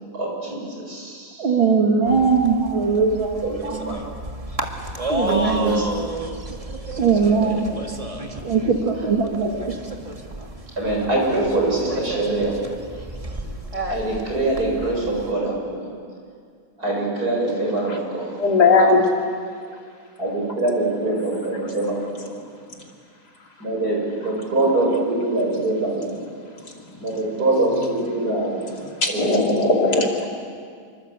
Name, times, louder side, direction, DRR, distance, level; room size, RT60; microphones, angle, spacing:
voice 1, 0.1-1.5 3.4-3.5 5.2-5.8 7.2-7.6 10.8-12.6 13.9-15.9 16.8-18.3 20.2-21.9 23.6-26.2 27.0-28.6 29.1-29.7, right 2 dB, 45° right, -1 dB, 7.4 m, -24 dB
voice 2, 1.4-4.0 5.1-5.8 7.0-7.8 8.3-9.8, right 5 dB, 65° right, 1 dB, 2.9 m, -21 dB
sound 1, 2.0-15.3, right 1 dB, 15° right, 1.7 m, -32 dB
voice 3, 18.4-19.0 21.0-21.4 24.2-24.7 27.7-28.0 29.0-30.3, left 3 dB, 50° left, 1 dB, 3.2 m, -20 dB
27.0 x 24.5 x 8.3 m, 2.2 s
omnidirectional pair, 2.3 m